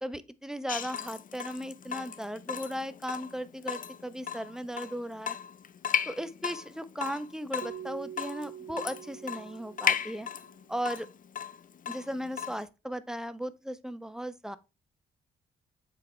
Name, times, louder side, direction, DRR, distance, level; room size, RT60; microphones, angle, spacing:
voice 1, 0.0-5.4 6.1-10.3 10.7-11.1 11.9-14.6, equal, 5° right, 0.8 m, -36 dB
Water tap faucet / Drip, 0.7-12.7, left 8 dB, 45° left, 0.6 m, -36 dB
Keyboard (musical), 7.6-10.4, right 10 dB, 75° right, 0.4 m, -45 dB
7.3 x 4.1 x 3.2 m
hypercardioid pair, 40°, 20 cm